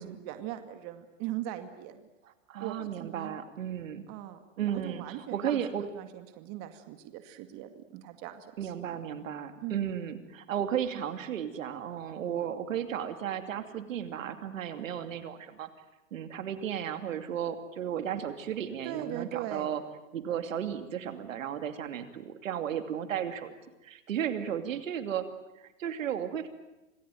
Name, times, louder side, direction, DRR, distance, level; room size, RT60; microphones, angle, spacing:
voice 1, 0.0-2.1 2.6-3.4 4.1-4.4 4.7-9.0 9.6-9.8 18.8-19.7, right 13 dB, 40° right, 8 dB, 2.3 m, -40 dB
voice 2, 2.5-4.0 4.6-5.9 8.6-15.7 16.1-19.8 20.1-23.5 23.8-25.3 25.6-26.5, right 9 dB, 80° right, 8 dB, 2.8 m, -34 dB
27.5 x 19.0 x 9.4 m, 1.0 s
hypercardioid pair, 130°, 39 cm